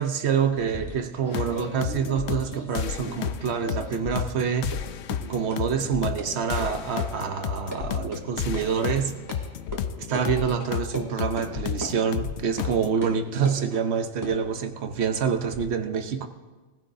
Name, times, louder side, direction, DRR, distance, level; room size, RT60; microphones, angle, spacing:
voice 1, 0.0-4.8 5.3-9.1 10.0-16.3, right 7 dB, 70° right, 1.1 m, -27 dB
sound 1, 0.5-3.4 3.6-4.4 4.7-4.8 5.1-5.2 5.5-5.6 6.2-6.3 6.6-6.7 7.0-7.1 7.4-7.8 8.1-8.2 8.5-8.6 9.3-9.4 9.7-9.8 10.1-10.3 10.9-11.1 11.4-11.5 11.8-11.9 12.6-12.7 13.0-13.6 14.1-15.7, right 1 dB, 20° right, 2.5 m, -37 dB
sound 2, 1.3-13.0, left 9 dB, 75° left, 0.9 m, -32 dB
20.0 x 15.0 x 2.7 m
omnidirectional pair, 1.2 m